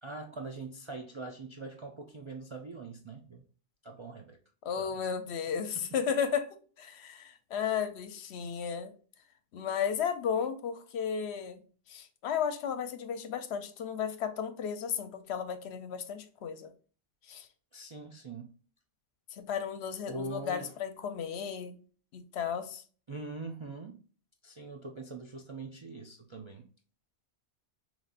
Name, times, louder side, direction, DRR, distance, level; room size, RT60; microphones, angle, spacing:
voice 1, 0.0-3.4 3.8-4.4 4.8-5.0 5.7-5.8 17.7-18.6 20.1-20.7 23.1-24.0 24.4-26.7, right 3 dB, 45° right, 0.3 m, -42 dB
voice 2, 4.6-6.5 6.8-8.9 9.5-11.6 11.9-16.7 17.3-17.5 19.3-21.8 22.1-22.8, left 7 dB, 70° left, 0.8 m, -34 dB
5.2 x 3.2 x 2.5 m
omnidirectional pair, 1.2 m